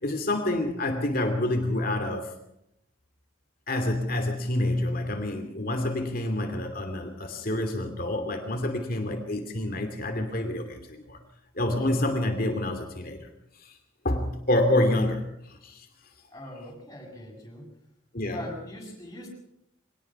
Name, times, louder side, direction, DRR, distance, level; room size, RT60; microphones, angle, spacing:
voice 1, 0.0-2.3 3.7-11.2 11.6-13.3 13.6-13.7 14.0-15.9 18.1-18.5, left 1 dB, 45° left, 5 dB, 2.7 m, -28 dB
voice 2, 16.3-17.7 18.3-19.3, left 1 dB, 15° left, -1 dB, 7.3 m, -41 dB
24.5 x 19.0 x 6.0 m, 0.79 s
head